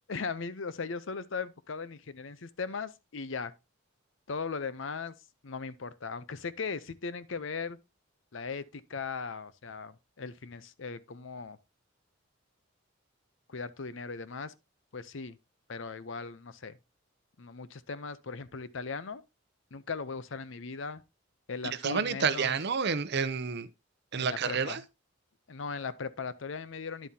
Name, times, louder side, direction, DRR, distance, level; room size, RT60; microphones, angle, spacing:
voice 1, 0.1-3.5 4.3-5.1 5.4-7.8 8.3-11.6 13.5-14.5 14.9-15.4 15.7-16.8 17.4-19.2 19.7-21.0 21.5-22.5 24.2-24.8 25.5-27.1, left 4 dB, 70° left, 0.7 m, -38 dB
voice 2, 21.8-23.7 24.1-24.8, right 5 dB, 55° right, 0.7 m, -29 dB
10.5 x 7.4 x 2.8 m
head